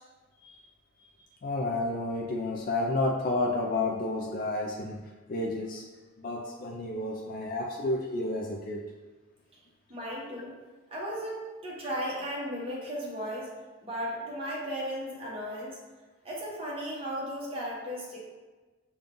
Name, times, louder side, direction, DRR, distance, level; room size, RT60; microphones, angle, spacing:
voice 1, 1.4-5.0 5.3-5.8 6.2-8.8, left 2 dB, 40° left, -1 dB, 0.4 m, -31 dB
voice 2, 9.9-10.5 10.9-13.5 13.8-15.8 16.2-18.3, equal, 25° right, -5 dB, 1.1 m, -35 dB
5.3 x 2.3 x 3.7 m, 1.3 s
head